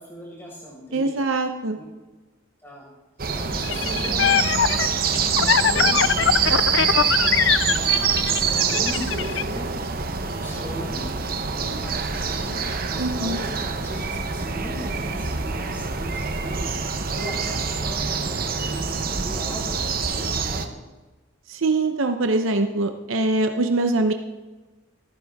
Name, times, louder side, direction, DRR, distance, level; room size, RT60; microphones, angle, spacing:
voice 1, 0.0-1.2 1.7-1.8 2.6-2.9 3.3-9.7 10.2-12.6 12.8-16.8 17.1-20.8, equal, 10° left, -4 dB, 5.2 m, -38 dB
voice 2, 0.9-1.8 13.0-13.4 21.5-24.1, right 2 dB, 85° right, 6 dB, 0.9 m, -23 dB
sound 1, 3.2-20.7, right 5 dB, 45° right, 1.0 m, -25 dB
sound 2, 3.6-9.4, left 8 dB, 60° left, 0.4 m, -22 dB
16.5 x 14.5 x 3.6 m, 1.2 s
head